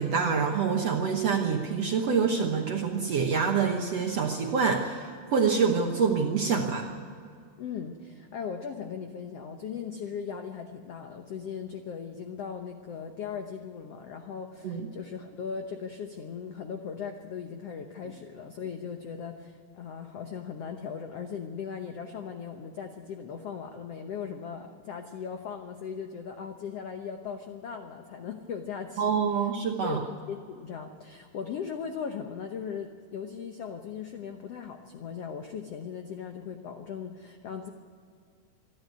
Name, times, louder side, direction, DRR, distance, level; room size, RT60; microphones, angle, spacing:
voice 1, 0.0-6.9 14.6-14.9 29.0-30.0, right 5 dB, 65° right, 2 dB, 1.6 m, -26 dB
voice 2, 7.6-29.5 29.8-37.7, left 6 dB, 80° left, 5 dB, 1.4 m, -38 dB
26.5 x 11.0 x 9.4 m, 2.2 s
omnidirectional pair, 4.3 m